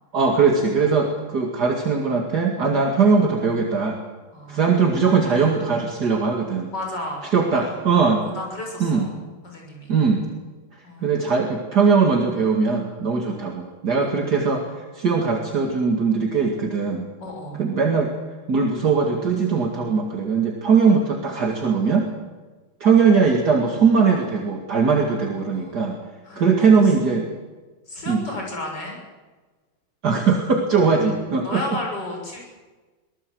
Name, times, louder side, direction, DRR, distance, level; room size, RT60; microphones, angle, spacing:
voice 1, 0.1-4.0 4.5-6.7 7.3-8.2 8.8-9.1 9.9-10.2 11.0-17.1 17.6-18.1 18.5-22.1 22.8-26.0 26.4-27.3 28.1-28.2 30.0-31.6, right 5 dB, 50° right, 1 dB, 2.7 m, -20 dB
voice 2, 4.3-4.7 6.7-7.6 8.1-9.1 9.4-10.0 10.8-11.2 13.3-13.4 14.0-14.2 17.2-17.6 24.9-25.9 26.2-26.5 26.8-26.9 27.9-29.0 31.4-32.4, left 1 dB, 55° left, 0 dB, 7.3 m, -34 dB
24.0 x 19.0 x 7.8 m, 1.3 s
omnidirectional pair, 2.2 m